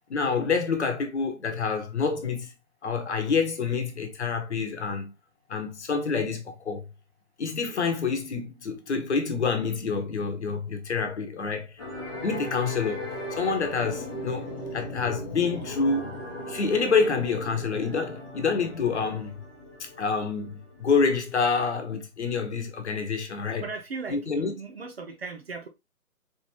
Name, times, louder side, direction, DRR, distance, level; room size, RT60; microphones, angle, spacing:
voice 1, 0.1-2.5 2.8-5.1 5.5-6.8 7.4-11.8 12.2-13.0 13.4-16.1 16.5-19.3 19.8-23.7 24.1-24.5, left 5 dB, 50° left, 1.1 m, -27 dB
sound 1, 11.8-21.4, left 1 dB, 15° left, 0.8 m, -38 dB
voice 2, 23.6-25.7, right 4 dB, 45° right, 0.7 m, -37 dB
4.1 x 3.4 x 3.1 m
hypercardioid pair, 160°, 45 cm